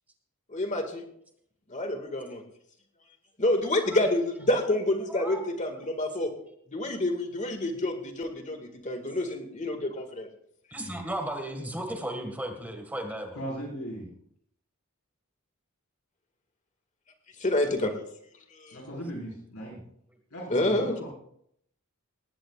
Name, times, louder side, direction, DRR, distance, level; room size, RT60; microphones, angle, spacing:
voice 1, 0.5-1.0 1.7-2.4 3.4-6.3 6.7-10.3 17.4-17.9 18.5-18.8 20.5-20.9, left 1 dB, 35° left, 5 dB, 2.0 m, -28 dB
voice 2, 5.1-5.4 10.7-13.4, right 1 dB, 10° right, 4 dB, 1.9 m, -35 dB
voice 3, 13.3-14.1 18.7-19.8 20.3-21.1, right 1 dB, 85° left, -4 dB, 5.0 m, -38 dB
19.0 x 17.0 x 2.5 m, 0.71 s
head